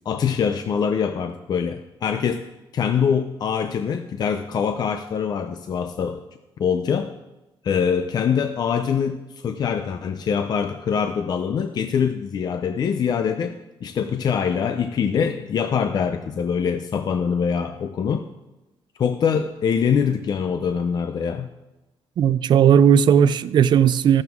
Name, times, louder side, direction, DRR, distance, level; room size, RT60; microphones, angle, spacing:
voice 1, 0.1-2.5 2.7-6.2 6.6-7.1 7.6-13.6 13.8-18.2 19.0-21.5, left 7 dB, 45° left, 8 dB, 0.6 m, -24 dB
voice 2, 22.2-24.2, right 8 dB, 50° right, 15 dB, 0.4 m, -16 dB
15.0 x 12.0 x 3.6 m, 1.0 s
cardioid pair, 165°, 10 cm